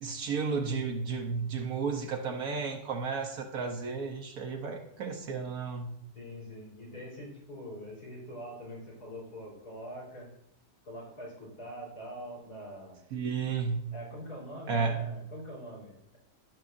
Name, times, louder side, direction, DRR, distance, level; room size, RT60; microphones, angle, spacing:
voice 1, 0.0-5.9 13.1-13.8 14.7-15.0, right 5 dB, 70° right, 3 dB, 1.2 m, -33 dB
voice 2, 6.1-10.3 10.8-13.0 13.9-16.2, equal, 85° left, -5 dB, 4.3 m, -44 dB
13.5 x 6.5 x 2.5 m, 0.75 s
omnidirectional pair, 1.6 m